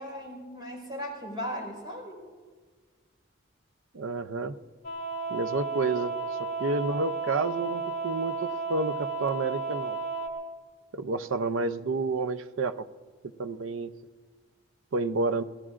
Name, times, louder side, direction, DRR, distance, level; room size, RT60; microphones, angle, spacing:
voice 1, 0.0-2.2, equal, 20° right, -1 dB, 4.9 m, -37 dB
voice 2, 3.9-4.6 5.3-6.2 6.6-10.0 10.9-12.9 13.4-13.9 14.9-15.4, right 3 dB, 75° right, 12 dB, 0.6 m, -30 dB
sound 1, 4.8-10.3, right 4 dB, 45° left, 2.5 m, -33 dB
26.0 x 18.0 x 2.5 m, 1.5 s
head